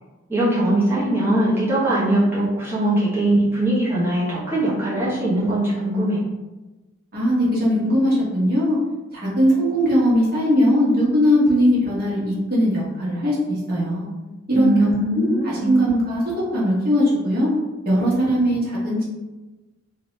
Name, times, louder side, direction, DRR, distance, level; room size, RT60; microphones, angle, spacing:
voice 1, 0.3-6.2 14.5-15.7, right 1 dB, 10° right, -10 dB, 0.9 m, -21 dB
voice 2, 7.1-8.8 9.1-14.1 14.5-16.2 16.5-17.5 17.8-19.0, equal, 50° right, -6 dB, 1.2 m, -20 dB
2.9 x 2.7 x 3.1 m, 1.1 s
head